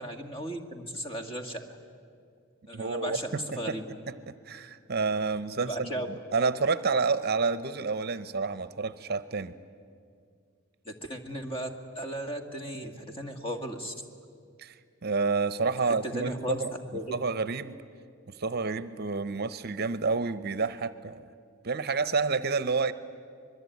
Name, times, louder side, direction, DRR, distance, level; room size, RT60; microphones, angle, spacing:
voice 1, 0.0-1.8 2.7-3.8 5.6-6.1 10.9-11.7 12.0-14.0 15.9-16.6 16.9-17.1, right 1 dB, 25° left, 5 dB, 2.1 m, -36 dB
voice 2, 2.7-3.8 4.3-9.6 14.6-16.7 17.1-17.8 18.3-21.2 21.6-22.9, right 4 dB, 50° right, 14 dB, 0.7 m, -29 dB
25.5 x 21.0 x 9.3 m, 2.3 s
head